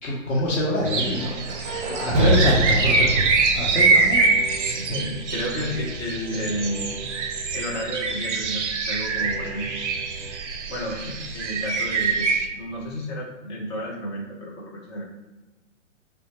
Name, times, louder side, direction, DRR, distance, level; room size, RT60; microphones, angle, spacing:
voice 1, 0.0-4.3, left 1 dB, 55° left, -6 dB, 0.9 m, -25 dB
sound 1, 0.8-12.5, right 4 dB, 65° right, 0.5 m, -24 dB
sound 2, 1.1-5.1, right 1 dB, 35° right, 0.9 m, -26 dB
sound 3, 3.9-8.2 9.1-10.3, equal, ahead, 1.1 m, -40 dB
voice 2, 4.8-6.8 7.5-9.7 10.7-15.0, equal, 20° left, -3 dB, 0.5 m, -31 dB
4.1 x 2.1 x 2.9 m, 1.1 s
figure-of-eight pair, 125°, 39 cm